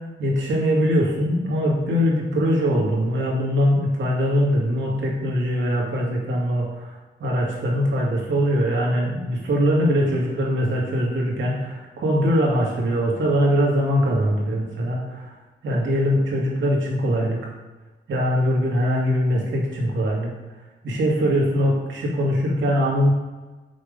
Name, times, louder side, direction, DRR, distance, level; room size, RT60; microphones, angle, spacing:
voice 1, 0.2-15.3 15.6-17.4 18.1-20.3 20.8-23.1, equal, 80° right, -3 dB, 2.2 m, -22 dB
6.4 x 5.5 x 5.2 m, 1.2 s
cardioid pair, 95°, 19 cm